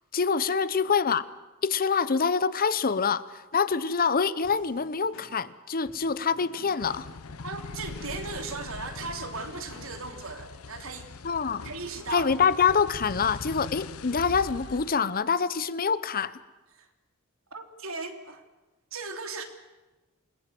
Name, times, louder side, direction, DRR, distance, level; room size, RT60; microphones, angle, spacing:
voice 1, 0.1-1.2 1.6-3.3 3.5-7.1 11.2-11.7 12.1-16.3, left 5 dB, 45° left, 16 dB, 0.8 m, -25 dB
sound 1, 4.4-10.2, left 2 dB, 65° left, 4.6 m, -52 dB
sound 2, 6.8-14.9, left 4 dB, 90° left, 0.8 m, -41 dB
voice 2, 7.4-11.0 11.6-12.3 16.7-16.9 17.5-18.4 18.9-19.4, right 4 dB, 70° right, 5 dB, 3.3 m, -37 dB
28.5 x 21.0 x 7.8 m, 1.1 s
head